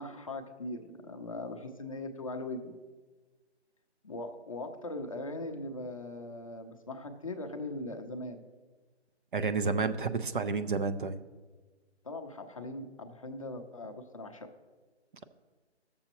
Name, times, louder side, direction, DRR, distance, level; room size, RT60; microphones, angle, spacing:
voice 1, 0.0-2.7 4.0-8.4 12.0-14.5, left 2 dB, 30° left, 5 dB, 0.5 m, -40 dB
voice 2, 9.3-11.2, right 4 dB, 50° right, 10 dB, 0.5 m, -30 dB
14.0 x 6.8 x 2.9 m, 1.3 s
hypercardioid pair, 160°, 34 cm